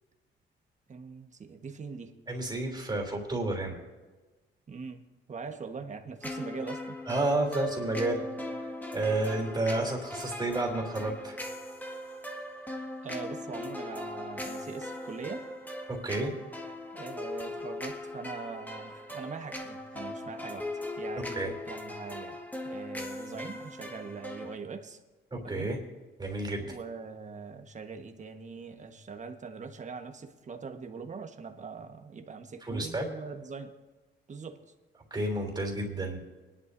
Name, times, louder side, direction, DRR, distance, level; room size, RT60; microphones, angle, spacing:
voice 1, 0.9-2.2 4.7-7.2 13.0-15.5 16.9-22.4 22.6-25.0 25.4-25.7 26.6-33.7 34.3-34.7, right 5 dB, 35° right, 5 dB, 1.4 m, -42 dB
voice 2, 2.3-3.8 7.1-8.3 8.9-11.4 15.9-16.3 21.3-21.5 25.3-25.8 26.2-26.7 32.6-33.0 35.1-36.2, right 2 dB, 20° right, 1 dB, 3.3 m, -31 dB
sound 1, 6.2-24.6, left 1 dB, 10° left, 1.8 m, -39 dB
22.0 x 11.0 x 2.7 m, 1.2 s
cardioid pair, 90°, 20 cm